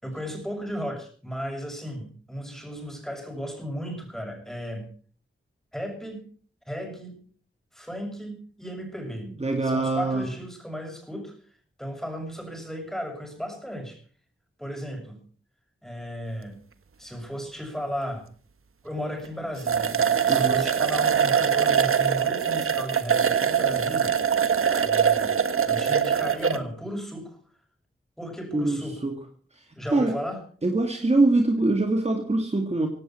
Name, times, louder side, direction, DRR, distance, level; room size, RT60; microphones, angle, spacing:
voice 1, 0.0-4.9 5.7-6.2 6.7-7.2 7.7-9.3 9.6-11.4 11.8-14.0 14.6-15.2 15.8-16.6 17.0-18.3 18.8-24.1 24.8-25.4 25.7-27.4 28.2-29.0 29.8-30.4, equal, ahead, 3 dB, 6.9 m, -35 dB
voice 2, 9.4-10.3 20.2-20.7 28.5-29.2 29.5-30.2 30.6-32.9, right 2 dB, 30° right, 4 dB, 2.2 m, -24 dB
sound 1, 19.2-19.3 19.6-26.6, right 7 dB, 85° right, 1.4 m, -23 dB
17.5 x 17.0 x 4.5 m, 0.43 s
wide cardioid pair, 105°, 21 cm